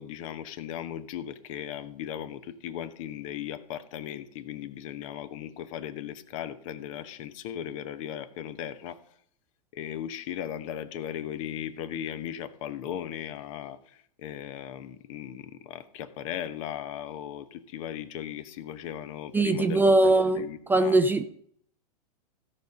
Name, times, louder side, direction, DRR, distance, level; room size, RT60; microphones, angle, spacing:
voice 1, 0.0-9.0 9.7-21.0, left 10 dB, 50° left, 1.0 m, -37 dB
voice 2, 19.3-21.2, right 2 dB, 10° right, 0.4 m, -21 dB
15.5 x 5.3 x 5.3 m
hypercardioid pair, 115°, 21 cm